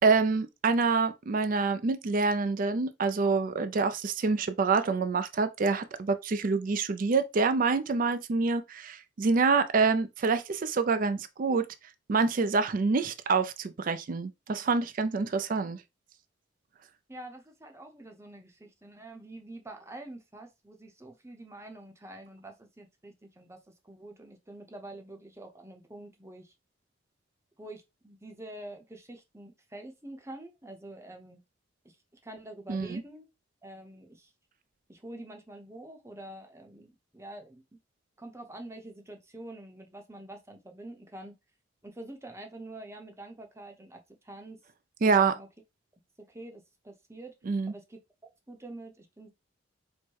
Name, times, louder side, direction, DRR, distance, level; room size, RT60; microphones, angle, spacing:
voice 1, 0.0-11.7 12.1-15.8 32.7-33.0 45.0-45.3 47.5-47.7, right 4 dB, 45° right, 0.4 m, -26 dB
voice 2, 17.1-26.5 27.6-31.4 31.8-32.0 32.2-33.3 33.6-34.3 34.9-37.8 38.2-41.3 41.8-44.6 45.0-45.5 46.3-47.3 47.7-48.0 48.5-49.3, right 1 dB, 15° right, 0.7 m, -46 dB
4.5 x 2.1 x 4.6 m
head